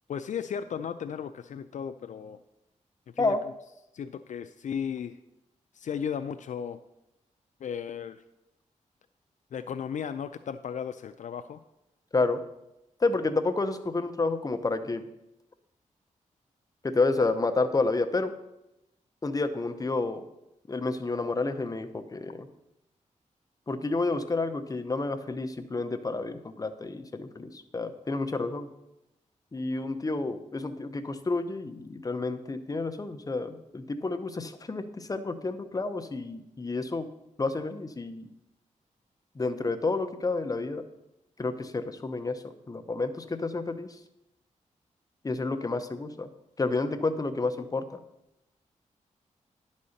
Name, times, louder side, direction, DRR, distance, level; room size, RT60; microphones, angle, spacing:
voice 1, 0.1-2.4 3.2-3.5 3.9-5.2 5.7-6.8 7.6-8.2 9.5-11.6, left 7 dB, 65° left, 10 dB, 0.4 m, -35 dB
voice 2, 13.0-15.0 16.8-18.3 19.2-20.2 20.7-22.5 23.7-28.7 29.5-37.1 37.4-38.2 39.4-40.8 41.4-43.9 45.2-46.3 46.6-47.8, left 3 dB, 25° left, 8 dB, 0.7 m, -30 dB
10.5 x 4.2 x 6.4 m, 0.89 s
wide cardioid pair, 90°, 13 cm